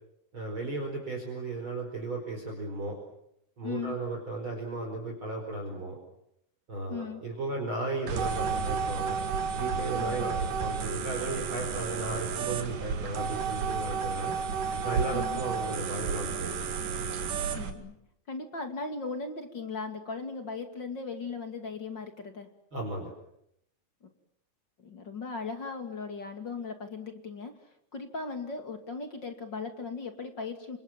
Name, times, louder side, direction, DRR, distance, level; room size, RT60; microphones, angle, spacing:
voice 1, 0.3-3.0 3.6-6.0 6.7-9.2 9.6-14.3 14.8-16.6 22.7-23.1, right 2 dB, 30° right, 1 dB, 5.3 m, -35 dB
voice 2, 3.6-3.9 6.9-7.2 9.9-10.4 15.1-15.4 17.5-18.0 18.3-22.5 24.0-24.1 24.8-27.5 27.9-30.8, left 4 dB, 30° left, 6 dB, 2.6 m, -38 dB
sound 1, 8.1-17.7, right 5 dB, 60° right, 3.5 m, -32 dB
29.5 x 26.5 x 7.5 m, 0.78 s
omnidirectional pair, 4.6 m